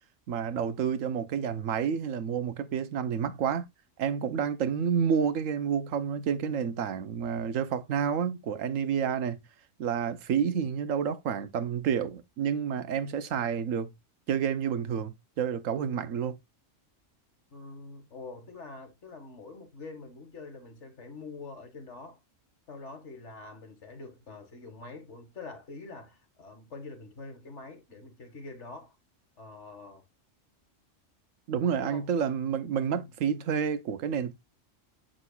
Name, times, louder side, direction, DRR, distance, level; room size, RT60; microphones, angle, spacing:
voice 1, 0.3-3.7 4.0-9.4 9.8-13.9 14.3-16.4 31.5-34.3, right 7 dB, 85° right, 1.2 m, -29 dB
voice 2, 17.5-22.2 22.7-29.0 29.4-30.0 31.8-32.0 32.9-33.1, left 3 dB, 65° left, 2.0 m, -45 dB
7.7 x 6.3 x 2.3 m
omnidirectional pair, 1.3 m